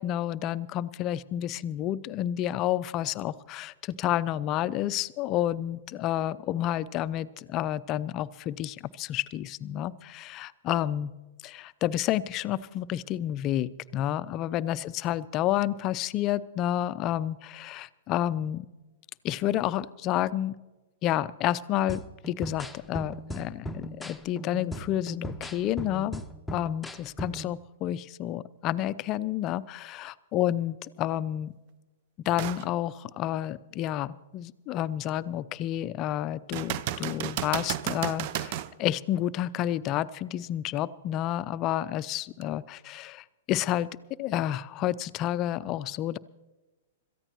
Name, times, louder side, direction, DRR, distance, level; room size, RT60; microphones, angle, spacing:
voice 1, 0.0-11.1 11.4-18.7 19.2-20.5 21.0-22.0 22.3-26.2 26.5-31.5 32.3-43.9 44.2-46.2, left 12 dB, 35° left, 17 dB, 0.5 m, -30 dB
sound 1, 21.9-27.5, equal, 5° left, 0.9 m, -39 dB
sound 2, 32.4-32.7 33.2-33.3 36.5-38.7 42.4-42.5, right 12 dB, 50° right, 0.6 m, -32 dB
26.5 x 14.5 x 3.0 m, 1.1 s
figure-of-eight pair, 110°, 0 cm